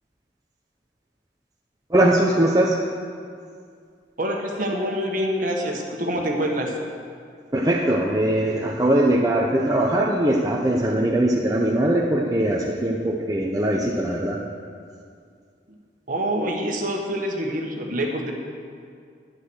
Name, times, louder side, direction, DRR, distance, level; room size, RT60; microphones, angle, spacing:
voice 1, 1.9-2.8 7.5-14.4, right 1 dB, 20° right, -2 dB, 0.8 m, -21 dB
voice 2, 4.2-6.7 16.1-18.3, equal, 50° right, 1 dB, 1.6 m, -26 dB
10.5 x 10.0 x 6.3 m, 2.2 s
head